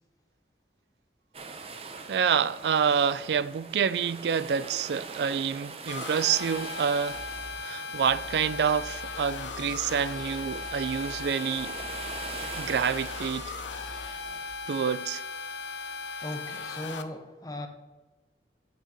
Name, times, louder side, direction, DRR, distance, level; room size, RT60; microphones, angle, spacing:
sound 1, 1.3-14.8, right 4 dB, 35° right, 0.6 m, -43 dB
voice 1, 2.1-7.2 7.6-11.7 12.6-13.5 14.1-14.2 14.7-15.2, right 7 dB, 70° right, 0.3 m, -27 dB
sound 2, 5.9-17.0, left 5 dB, 90° left, 0.6 m, -38 dB
sound 3, 7.0-7.5 7.9-11.2 11.5-14.4, equal, 5° right, 1.5 m, -46 dB
voice 2, 16.2-17.7, left 1 dB, 20° left, 0.8 m, -37 dB
7.5 x 5.7 x 5.2 m
head